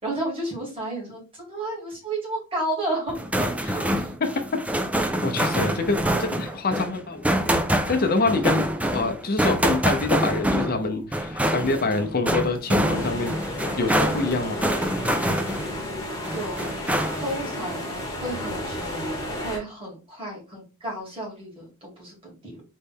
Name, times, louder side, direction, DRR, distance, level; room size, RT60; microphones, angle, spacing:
voice 1, 0.0-4.1 16.3-16.7 17.2-17.9 18.2-22.6, right 1 dB, 25° right, 2.7 m, -32 dB
sound 1, 3.1-15.8 16.2-17.4, right 1 dB, 5° right, 0.4 m, -25 dB
voice 2, 5.2-7.6 7.9-13.4 13.7-14.6, left 3 dB, 45° left, 0.8 m, -26 dB
sound 2, 12.9-19.6, left 1 dB, 15° left, 1.3 m, -32 dB
4.1 x 3.3 x 3.6 m
head